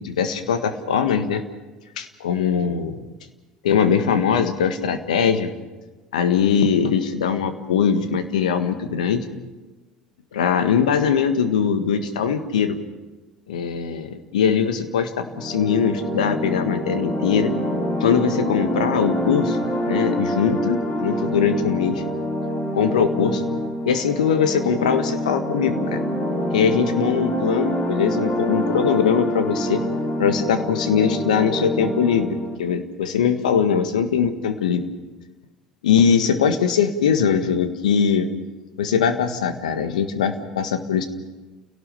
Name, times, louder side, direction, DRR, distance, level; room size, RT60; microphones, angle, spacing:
voice 1, 0.0-1.4 2.0-3.0 3.6-5.5 6.1-9.3 10.3-12.8 13.5-17.5 17.9-19.6 19.9-22.0 22.7-23.4 23.8-26.0 26.5-29.8 30.2-34.8 35.8-38.3 38.8-41.1, left 7 dB, 75° left, 8 dB, 1.7 m, -21 dB
sound 1, 15.2-32.6, equal, 40° left, 5.5 m, -26 dB
29.5 x 18.0 x 5.6 m, 1.2 s
figure-of-eight pair, 65°, 4 cm